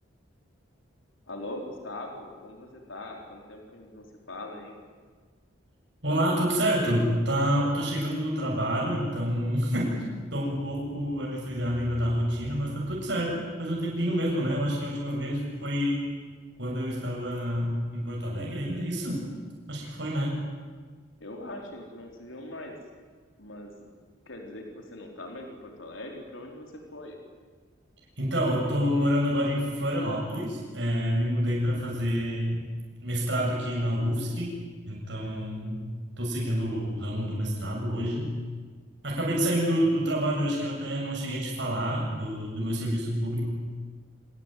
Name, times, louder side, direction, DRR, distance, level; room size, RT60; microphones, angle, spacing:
voice 1, 1.3-4.8 21.2-22.8 23.4-23.9 24.3-27.2, left 1 dB, 85° left, 2 dB, 4.3 m, -41 dB
voice 2, 6.0-10.0 10.3-16.1 16.6-19.3 19.7-20.4 28.2-32.6 33.0-35.8 36.2-38.3 39.0-43.5, equal, 65° right, -3 dB, 7.4 m, -28 dB
27.5 x 19.5 x 9.3 m, 1.5 s
head